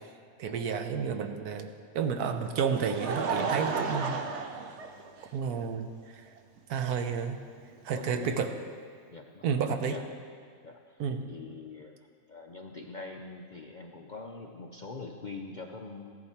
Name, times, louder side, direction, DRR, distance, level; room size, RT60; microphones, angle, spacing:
voice 1, 0.4-1.7 1.9-4.2 5.3-6.2 6.7-7.4 7.8-8.5 9.4-10.0 11.0-11.3, right 6 dB, 85° right, 6 dB, 1.3 m, -31 dB
Laughter, 2.3-5.5 6.4-6.5 7.9-8.0, right 5 dB, 55° right, 1.0 m, -33 dB
voice 2, 7.9-8.4 9.1-10.0 10.6-11.0 11.3-11.9 12.3-16.1, left 3 dB, 55° left, 2 dB, 0.5 m, -44 dB
15.0 x 10.5 x 4.3 m, 2.1 s
omnidirectional pair, 1.6 m